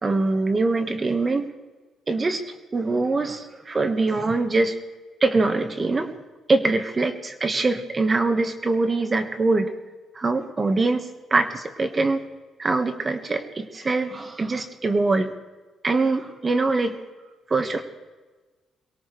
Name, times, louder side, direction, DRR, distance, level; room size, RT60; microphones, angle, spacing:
voice 1, 0.0-1.5 2.1-2.4 2.7-4.8 5.2-6.1 6.5-9.7 10.1-12.2 12.6-15.3 15.8-17.0 17.5-17.8, right 3 dB, 30° right, 7 dB, 1.6 m, -23 dB
23.0 x 18.0 x 3.4 m, 1.3 s
cardioid pair, 90°, 0 cm